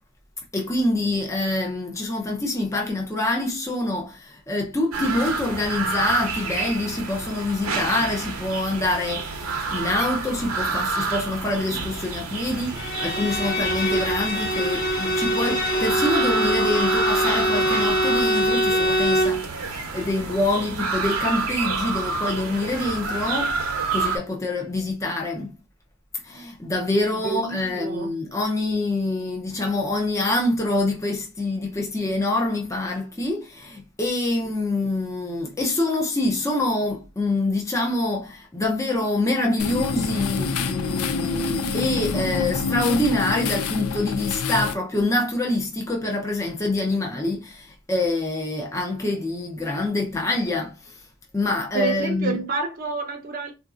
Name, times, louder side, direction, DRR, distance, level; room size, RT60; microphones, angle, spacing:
voice 1, 0.5-23.6 23.9-25.6 26.2-51.0 51.3-52.4, left 2 dB, 15° left, 0.5 m, -26 dB
sound 1, 4.9-24.2, right 4 dB, 80° right, 0.8 m, -29 dB
Bowed string instrument, 12.8-19.4, equal, 40° left, 1.2 m, -23 dB
voice 2, 27.1-28.2 51.7-53.5, right 4 dB, 40° right, 0.6 m, -29 dB
sound 2, 39.6-44.7, left 4 dB, 85° left, 0.4 m, -26 dB
3.9 x 2.5 x 2.3 m
head